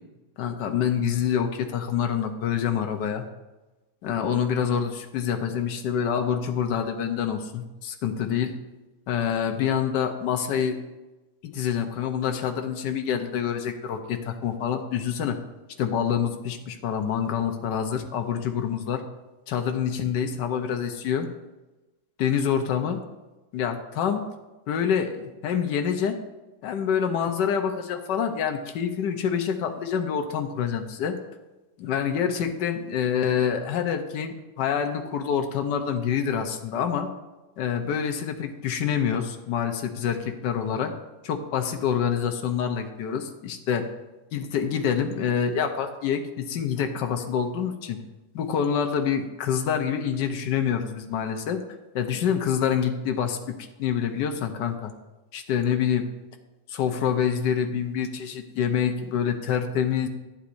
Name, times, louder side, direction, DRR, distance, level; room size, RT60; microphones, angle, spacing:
voice 1, 0.4-3.2 4.0-8.5 9.1-10.8 11.4-15.4 15.8-19.0 19.5-21.3 22.2-23.0 23.5-24.2 24.7-26.2 26.6-31.2 31.8-37.1 37.6-40.9 41.2-43.9 44.3-48.0 48.3-51.6 51.9-54.9 55.3-56.0 56.7-60.1, left 8 dB, 85° left, 6 dB, 1.4 m, -26 dB
11.5 x 10.0 x 2.6 m, 1.1 s
omnidirectional pair, 1.8 m